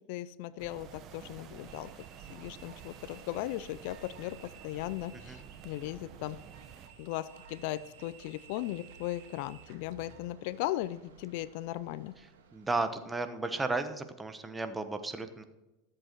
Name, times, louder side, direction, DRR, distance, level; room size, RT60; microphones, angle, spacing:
voice 1, 0.1-1.9 2.3-6.4 7.0-12.1, left 15 dB, 65° left, 18 dB, 0.4 m, -37 dB
sound 1, 0.6-6.9, right 8 dB, 40° right, 1.2 m, -50 dB
sound 2, 1.5-10.2, right 8 dB, 65° right, 1.9 m, -56 dB
sound 3, 5.8-13.0, right 5 dB, 85° right, 2.6 m, -58 dB
voice 2, 12.2-15.4, right 3 dB, 10° right, 9 dB, 1.0 m, -34 dB
14.0 x 7.7 x 4.6 m, 1.0 s
supercardioid pair, 115°, 0 cm